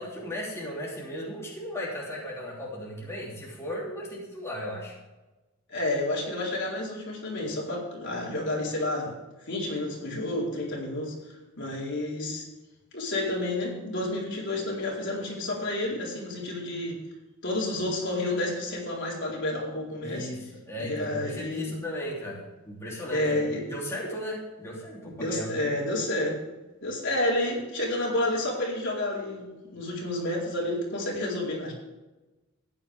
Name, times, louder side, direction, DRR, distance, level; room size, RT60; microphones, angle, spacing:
voice 1, 0.0-4.9 20.0-20.4 20.7-25.7, equal, 15° left, -5 dB, 3.3 m, -36 dB
voice 2, 5.7-9.1 9.5-11.2 11.6-12.5 12.9-17.0 17.4-20.3 20.8-21.7 23.1-23.6 25.2-26.4 26.8-31.7, left 1 dB, 60° left, -4 dB, 4.4 m, -30 dB
15.5 x 10.5 x 3.6 m, 1.1 s
head